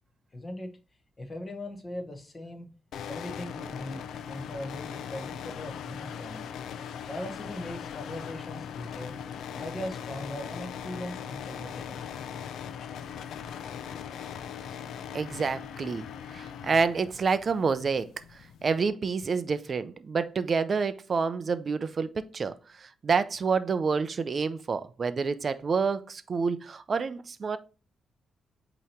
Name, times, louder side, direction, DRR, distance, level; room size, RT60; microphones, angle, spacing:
voice 1, 0.3-0.8 1.2-2.7 3.1-6.4 7.1-12.6 12.8-13.8, left 1 dB, 20° left, 1.1 m, -40 dB
sound 1, 2.9-18.9, left 8 dB, 80° left, 0.5 m, -40 dB
voice 2, 15.1-16.0 16.3-27.6, right 5 dB, 35° right, 0.5 m, -28 dB
8.4 x 3.0 x 4.4 m
wide cardioid pair, 160°, 0 cm